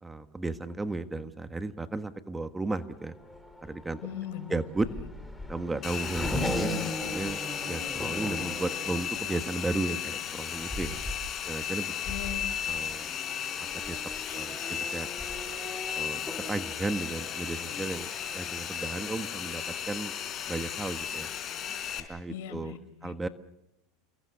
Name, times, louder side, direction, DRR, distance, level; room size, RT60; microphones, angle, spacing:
voice 1, 0.0-3.1 3.6-4.0 4.5-4.9 5.5-7.4 7.7-11.0 11.5-11.9 12.7-13.1 13.7-14.0 14.3-15.1 15.9-16.2 16.5-20.1 20.5-21.3 22.1-22.8 23.0-23.3, right 2 dB, 10° right, 10 dB, 1.5 m, -34 dB
Race car auto racing / Accelerating revving vroom, 2.8-19.0, left 1 dB, 5° left, 4.1 m, -39 dB
voice 2, 4.0-4.6 12.1-12.8 22.3-23.1, left 10 dB, 75° left, 10 dB, 5.6 m, -39 dB
Domestic sounds home sounds, 5.8-22.0, left 8 dB, 35° left, 4.7 m, -35 dB
29.5 x 22.0 x 6.9 m, 0.85 s
supercardioid pair, 115°, 0 cm